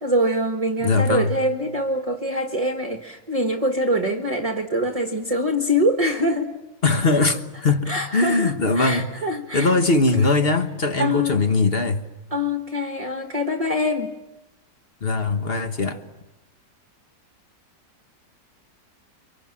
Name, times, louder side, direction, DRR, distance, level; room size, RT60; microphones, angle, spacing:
voice 1, 0.0-6.5 7.9-9.7 11.0-11.4 12.3-14.2, equal, 20° right, 1.4 m, -24 dB
voice 2, 0.8-1.3 6.8-9.1 9.5-12.0 15.0-16.0, left 3 dB, 35° left, 1.3 m, -21 dB
30.0 x 25.0 x 7.5 m
omnidirectional pair, 2.0 m